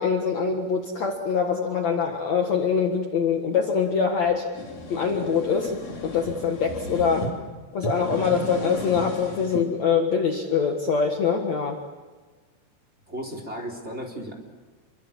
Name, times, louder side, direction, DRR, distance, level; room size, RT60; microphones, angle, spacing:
voice 1, 0.0-4.4 4.9-7.3 7.7-11.8, left 6 dB, 80° left, 3 dB, 1.5 m, -24 dB
sound 1, 4.2-7.3 7.7-9.7, equal, 35° left, 4.3 m, -35 dB
voice 2, 13.1-14.4, equal, 15° right, 3 dB, 3.4 m, -34 dB
28.5 x 23.5 x 7.4 m, 1.4 s
omnidirectional pair, 6.0 m